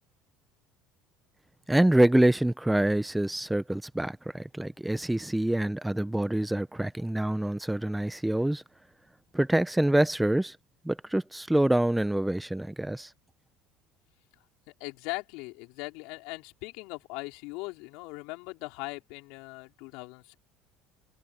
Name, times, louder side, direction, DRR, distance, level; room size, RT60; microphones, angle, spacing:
voice 1, 1.7-8.6 9.3-10.6 10.8-13.1, right 1 dB, 5° right, 1.0 m, -26 dB
voice 2, 14.8-20.4, left 26 dB, 70° left, 4.7 m, -40 dB
hypercardioid pair, 75°, 0 cm